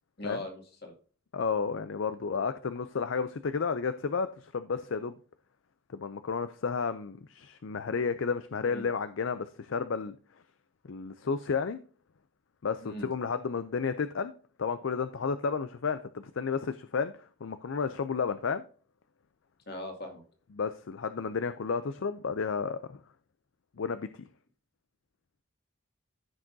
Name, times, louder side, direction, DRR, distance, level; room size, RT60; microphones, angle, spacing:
voice 1, 0.2-0.9 8.6-8.9 12.8-13.1 19.7-20.2, left 1 dB, 50° left, 2 dB, 2.3 m, -40 dB
voice 2, 1.3-5.2 5.9-10.2 10.9-11.8 12.6-14.3 14.6-18.6 20.5-23.0 23.8-24.3, left 5 dB, 65° left, 11 dB, 0.5 m, -32 dB
14.5 x 6.1 x 2.7 m, 0.41 s
head